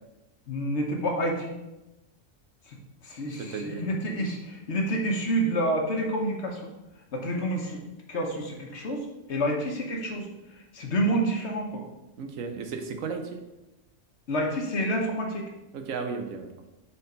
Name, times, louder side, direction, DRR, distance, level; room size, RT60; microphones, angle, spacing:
voice 1, 0.5-1.5 2.7-2.8 3.0-6.7 7.1-7.8 8.1-11.8 14.3-15.5, right 1 dB, 60° left, 1 dB, 1.4 m, -28 dB
voice 2, 3.4-3.8 12.2-13.4 15.7-16.7, right 5 dB, 85° right, 6 dB, 1.2 m, -34 dB
5.3 x 4.5 x 5.1 m, 0.98 s
omnidirectional pair, 1.4 m